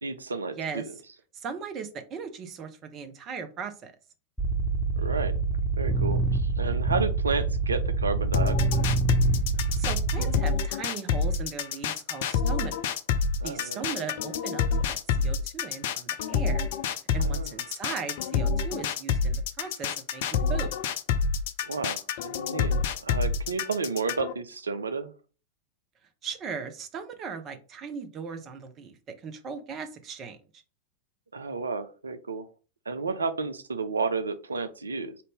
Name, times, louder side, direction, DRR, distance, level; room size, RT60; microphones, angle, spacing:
voice 1, 0.0-1.0 5.0-5.4 5.8-8.9 13.4-13.8 17.2-17.5 21.6-25.1 31.3-32.5 32.9-35.2, right 4 dB, 75° right, 10 dB, 0.4 m, -32 dB
voice 2, 1.3-3.9 9.7-12.9 13.4-16.7 17.1-20.7 26.2-28.9 29.2-30.6, right 6 dB, 30° right, 7 dB, 0.7 m, -38 dB
sound 1, 4.4-10.4, right 3 dB, 5° left, 0.7 m, -26 dB
sound 2, 8.3-24.3, left 5 dB, 50° left, 0.4 m, -27 dB
4.1 x 2.6 x 3.5 m, 0.35 s
figure-of-eight pair, 90°, 0 cm